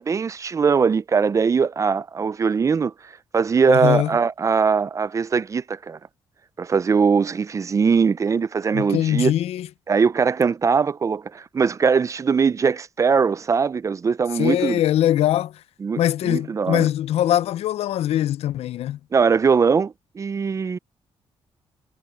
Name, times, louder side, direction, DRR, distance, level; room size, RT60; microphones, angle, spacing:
voice 1, 0.0-2.9 3.3-6.0 6.6-9.3 9.9-14.8 15.8-16.9 19.1-20.8, right 5 dB, 30° right, 0.4 m, -21 dB
voice 2, 3.7-4.1 8.7-9.7 14.4-15.6 16.0-19.0, left 12 dB, 80° left, 0.4 m, -22 dB
cardioid pair, 110°, 10 cm